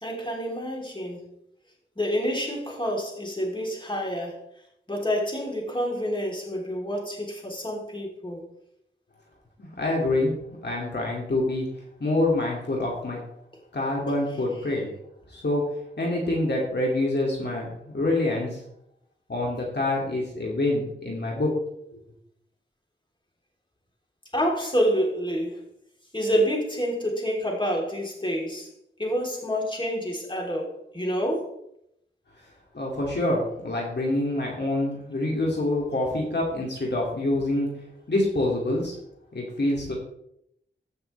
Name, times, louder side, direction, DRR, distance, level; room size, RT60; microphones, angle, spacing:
voice 1, 0.0-1.2 1.9-4.4 4.9-8.4 24.3-25.6 26.1-28.7 29.0-31.5, equal, 25° left, -2 dB, 3.4 m, -28 dB
voice 2, 9.6-10.3 10.6-11.7 12.0-13.2 13.7-14.9 15.3-15.6 16.0-18.6 19.3-21.5 21.9-22.0 32.7-37.7 38.1-39.0 39.3-39.9, left 2 dB, 60° left, -3 dB, 2.5 m, -26 dB
15.0 x 6.1 x 3.4 m, 0.76 s
cardioid pair, 45°, 20 cm